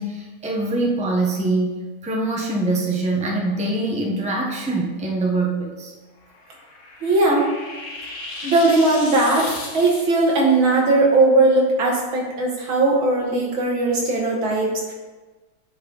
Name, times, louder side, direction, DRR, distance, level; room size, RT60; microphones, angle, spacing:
voice 1, 0.0-5.9, right 2 dB, 10° right, -1 dB, 0.4 m, -24 dB
sound 1, 6.2-10.4, left 2 dB, 90° left, 2.3 m, -35 dB
voice 2, 7.0-7.5 8.4-14.9, right 2 dB, 70° right, -2 dB, 2.4 m, -18 dB
9.1 x 5.4 x 4.0 m, 1.3 s
omnidirectional pair, 2.3 m